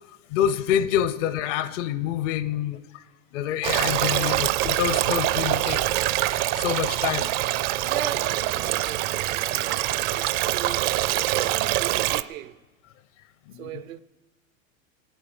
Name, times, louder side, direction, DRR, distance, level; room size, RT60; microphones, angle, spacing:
voice 1, 0.3-2.8 3.3-5.8 6.5-7.3 13.5-13.7, left 10 dB, 60° left, 0.9 m, -26 dB
Stream, 3.6-12.2, right 15 dB, 45° right, 0.6 m, -24 dB
voice 2, 4.1-4.4 7.8-10.9 11.3-12.6 13.5-14.0, right 10 dB, 85° right, 1.0 m, -37 dB
18.0 x 8.7 x 7.8 m
supercardioid pair, 125°, 40 cm